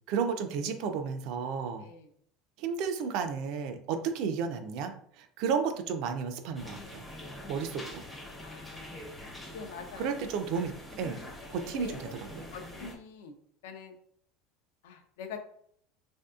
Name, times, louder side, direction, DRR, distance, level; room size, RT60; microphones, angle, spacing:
voice 1, 0.1-1.9 2.6-7.0 7.5-8.0 10.0-10.7 11.0-11.2 11.5-12.5, right 6 dB, 50° right, 7 dB, 0.4 m, -32 dB
sound 1, 6.5-12.9, left 1 dB, 10° left, 0.5 m, -45 dB
voice 2, 8.4-9.1 9.5-10.2 11.8-12.0 12.5-13.3 13.6-13.9 14.8-15.4, left 6 dB, 90° left, 6 dB, 0.5 m, -44 dB
3.4 x 2.6 x 2.3 m, 0.64 s
cardioid pair, 165°, 0 cm